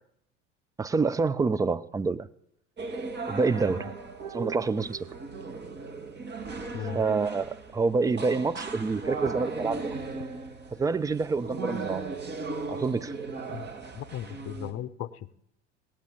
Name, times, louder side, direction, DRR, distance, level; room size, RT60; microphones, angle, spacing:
voice 1, 0.8-2.3 3.3-3.9 4.3-5.1 6.9-10.0 10.7-12.0 12.7-13.1, right 4 dB, 10° right, 12 dB, 0.5 m, -27 dB
sound 1, 2.8-14.7, right 4 dB, 30° right, 1.9 m, -37 dB
voice 2, 13.9-15.3, left 11 dB, 40° left, 15 dB, 0.8 m, -37 dB
17.5 x 8.9 x 5.3 m, 0.76 s
figure-of-eight pair, 70°, 36 cm